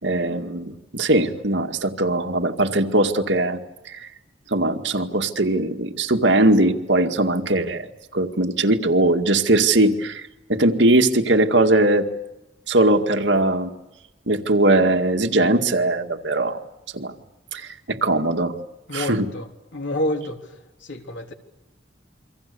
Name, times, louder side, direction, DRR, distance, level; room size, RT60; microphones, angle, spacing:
voice 1, 0.0-3.6 3.9-4.1 4.5-7.9 8.1-12.1 12.7-13.7 14.3-16.6 16.9-17.1 17.5-18.5 18.9-19.3, right 2 dB, 70° right, 5 dB, 2.2 m, -20 dB
voice 2, 18.9-20.4 20.8-21.3, left 1 dB, 85° left, 4 dB, 3.5 m, -28 dB
29.0 x 24.5 x 7.1 m, 0.97 s
head